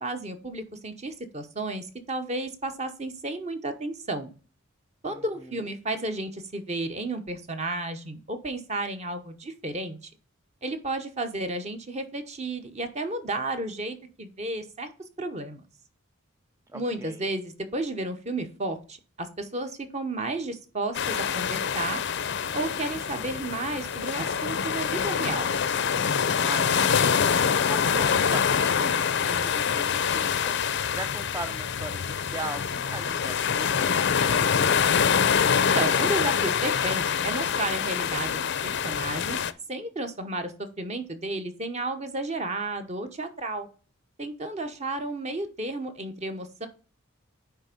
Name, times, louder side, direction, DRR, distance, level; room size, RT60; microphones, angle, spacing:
voice 1, 0.0-4.3 5.0-10.1 10.6-14.9 15.2-15.6 16.7-22.0 22.5-25.5 35.6-39.4 39.7-43.7 44.2-46.7, right 2 dB, 35° right, 8 dB, 1.0 m, -32 dB
voice 2, 16.7-17.3 26.3-34.9, right 2 dB, 15° right, 7 dB, 0.4 m, -40 dB
sound 1, 20.9-39.5, left 7 dB, 55° left, 0.5 m, -25 dB
9.5 x 3.4 x 5.2 m, 0.37 s
head